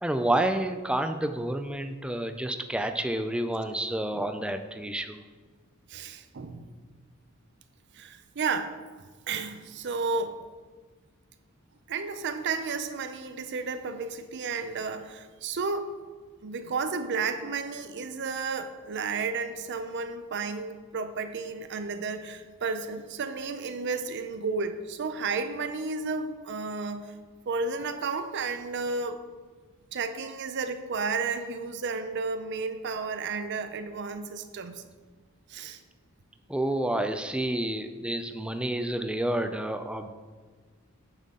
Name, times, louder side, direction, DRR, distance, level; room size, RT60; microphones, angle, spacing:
voice 1, 0.0-5.2 36.5-40.1, right 1 dB, 5° right, 8 dB, 0.4 m, -29 dB
voice 2, 5.9-6.7 7.9-8.8 9.3-10.4 11.9-15.9 16.4-27.2 27.5-29.2 29.9-34.8 35.5-35.8, right 4 dB, 55° right, 10 dB, 0.5 m, -32 dB
8.9 x 5.6 x 3.7 m, 1.4 s
head